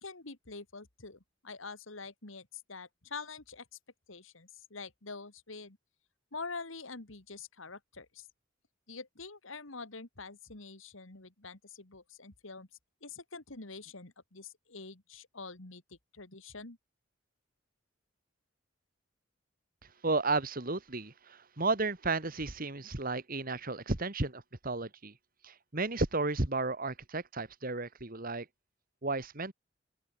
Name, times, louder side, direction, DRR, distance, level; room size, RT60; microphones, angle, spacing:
voice 1, 0.0-3.7 4.1-5.8 6.3-8.3 8.9-12.7 13.0-16.8, left 4 dB, 75° left, 2.5 m, -46 dB
voice 2, 20.0-25.1 25.4-28.5 29.0-29.5, right 3 dB, 45° right, 2.0 m, -33 dB
open air
head